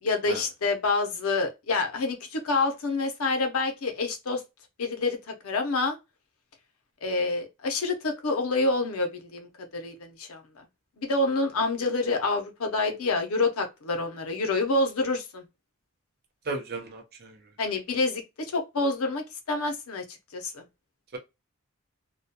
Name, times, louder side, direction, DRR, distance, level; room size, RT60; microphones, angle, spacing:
voice 1, 0.0-4.4 4.8-6.0 7.0-10.6 11.0-15.4 17.6-20.6, left 3 dB, 85° left, 0.6 m, -27 dB
voice 2, 16.5-17.3, right 3 dB, 45° right, 0.5 m, -35 dB
2.2 x 2.2 x 2.7 m
head